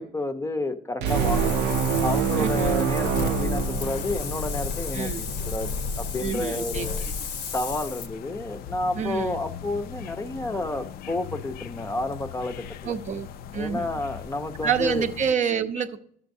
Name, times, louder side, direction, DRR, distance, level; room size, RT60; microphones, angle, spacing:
voice 1, 0.0-1.6 2.0-7.1 7.5-12.9 13.5-15.1, left 2 dB, 15° left, 7 dB, 0.6 m, -31 dB
sound 1, 1.0-4.5, right 7 dB, 90° right, 0.5 m, -25 dB
Wind, 1.1-8.1, left 4 dB, 80° left, 0.9 m, -31 dB
sound 2, 1.2-15.3, left 9 dB, 65° left, 0.4 m, -41 dB
voice 2, 2.4-2.8 4.9-5.2 6.2-6.9 9.0-9.4 12.8-13.3 13.5-13.9 14.6-16.0, right 7 dB, 45° right, 8 dB, 0.6 m, -27 dB
12.0 x 7.0 x 2.6 m, 0.62 s
cardioid pair, 110°, 17 cm